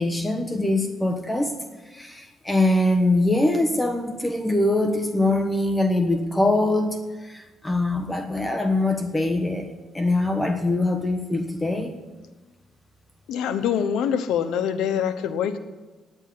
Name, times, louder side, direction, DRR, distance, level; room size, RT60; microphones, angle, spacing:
voice 1, 0.0-1.6 1.9-9.7 9.9-12.0, left 2 dB, 10° left, 6 dB, 1.1 m, -23 dB
voice 2, 13.3-15.6, left 8 dB, 85° left, 10 dB, 0.9 m, -24 dB
10.5 x 8.2 x 8.4 m, 1.2 s
cardioid pair, 90°, 0 cm